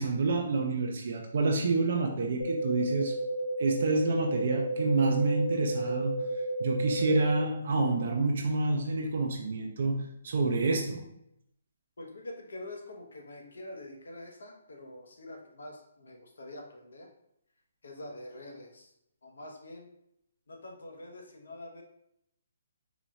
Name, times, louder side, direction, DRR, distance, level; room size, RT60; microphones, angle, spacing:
voice 1, 0.0-3.2 3.6-6.2 6.6-11.1, right 3 dB, 40° right, 2 dB, 0.4 m, -28 dB
sound 1, 2.4-7.4, right 1 dB, 55° left, 0.5 m, -32 dB
voice 2, 12.0-17.1 17.8-18.9 19.2-19.9 20.5-21.8, left 1 dB, 85° left, 1 dB, 0.9 m, -45 dB
4.0 x 2.3 x 3.0 m, 0.77 s
hypercardioid pair, 180°, 0 cm